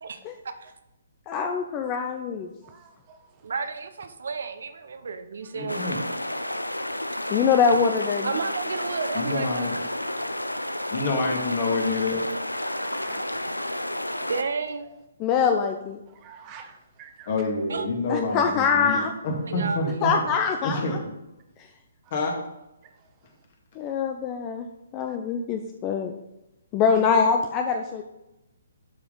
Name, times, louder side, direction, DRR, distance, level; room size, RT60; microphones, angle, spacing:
voice 1, 1.3-2.5 7.3-8.3 15.2-16.0 18.1-19.1 20.0-21.0 23.8-24.7 24.9-26.1 26.7-28.0, left 6 dB, 25° left, 6 dB, 0.6 m, -24 dB
voice 2, 2.6-3.2 5.4-5.5 12.9-13.6 14.1-14.3 14.8-14.9 16.1-17.3 23.9-24.0 25.1-25.2 27.0-27.1, right 7 dB, 25° right, 5 dB, 1.0 m, -47 dB
voice 3, 3.4-5.8 8.2-9.6 14.3-14.8 17.7-17.8 19.5-20.1, right 5 dB, 60° right, 9 dB, 0.8 m, -31 dB
voice 4, 5.5-6.0 9.1-9.8 10.9-12.2 17.3-20.2 20.6-21.1 22.1-22.4, left 3 dB, 40° left, 1 dB, 2.0 m, -27 dB
sound 1, 5.7-14.4, left 1 dB, 90° left, 0.5 m, -31 dB
11.5 x 4.9 x 3.9 m, 0.93 s
figure-of-eight pair, 130°, 0 cm